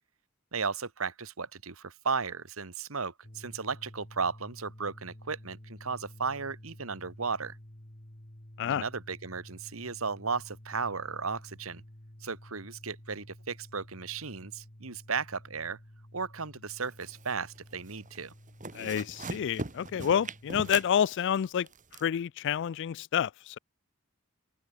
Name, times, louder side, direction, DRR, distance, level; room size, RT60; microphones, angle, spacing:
voice 1, 0.5-7.6 8.6-11.8 12.2-15.8 16.1-18.3, right 5 dB, 75° right, 1.7 m, -35 dB
sound 1, 3.2-20.6, equal, 35° left, 3.0 m, -52 dB
sound 2, 16.9-17.6 17.9-18.2 18.5-22.0, right 3 dB, 40° right, 3.1 m, -40 dB
voice 2, 18.7-21.7 22.0-23.6, left 8 dB, 60° left, 0.3 m, -29 dB
open air
head